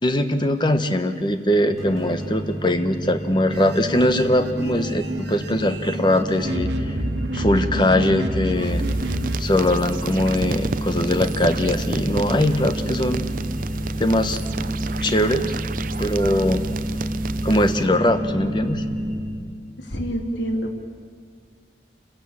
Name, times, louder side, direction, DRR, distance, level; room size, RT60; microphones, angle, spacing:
voice 1, 0.0-7.0 7.3-8.8 9.4-13.2 14.0-14.4 15.0-15.6 16.0-16.7 17.4-18.9, left 1 dB, 25° left, 9 dB, 1.1 m, -21 dB
sound 1, 1.7-19.2, equal, ahead, 7.2 m, -30 dB
sound 2, 3.5-9.4, right 1 dB, 85° right, 1.5 m, -28 dB
sound 3, 8.5-17.9, right 3 dB, 50° right, 0.6 m, -30 dB
voice 2, 19.8-20.8, equal, 85° left, 2 dB, 2.9 m, -27 dB
28.0 x 15.0 x 8.7 m, 2.1 s
head